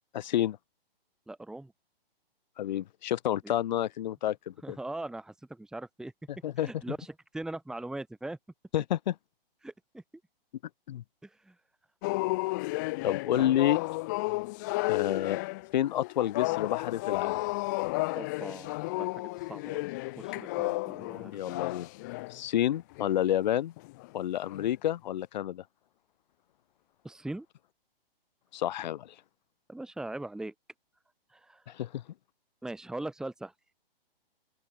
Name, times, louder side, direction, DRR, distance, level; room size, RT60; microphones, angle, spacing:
voice 1, 0.1-0.6 2.6-4.8 6.4-6.7 8.7-9.1 10.9-11.0 13.0-13.8 14.9-15.4 15.7-17.4 21.3-21.9 22.3-23.7 24.1-25.6 28.5-29.1 31.7-32.0, left 12 dB, 45° left, 1.6 m, -29 dB
voice 2, 1.3-1.7 3.4-3.5 4.6-6.1 6.6-8.4 9.6-10.0 11.2-11.5 13.3-13.5 18.2-19.2 19.5-19.8 20.2-21.6 27.0-27.5 29.7-30.5 31.3-31.6 32.6-33.5, right 2 dB, ahead, 2.2 m, -40 dB
sound 1, 12.0-22.4 22.9-23.1 23.8-24.1 24.5-24.7, left 23 dB, 20° left, 0.5 m, -33 dB
open air
hypercardioid pair, 145°, 30 cm